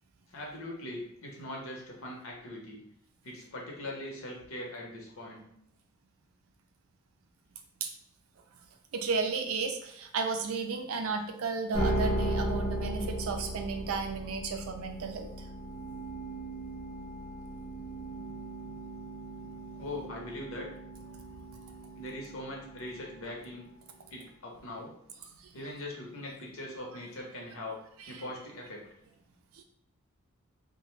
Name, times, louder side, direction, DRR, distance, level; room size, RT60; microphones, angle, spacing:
voice 1, 0.3-2.8 3.2-5.4 19.8-20.7 22.0-23.7 24.1-24.9 25.5-28.8, left 1 dB, 75° left, -1 dB, 0.8 m, -41 dB
voice 2, 8.9-15.3 29.6-29.7, right 4 dB, 90° right, 5 dB, 0.4 m, -33 dB
sound 1, 11.7-24.0, right 1 dB, 25° left, 0.5 m, -37 dB
2.5 x 2.2 x 3.1 m, 0.75 s
head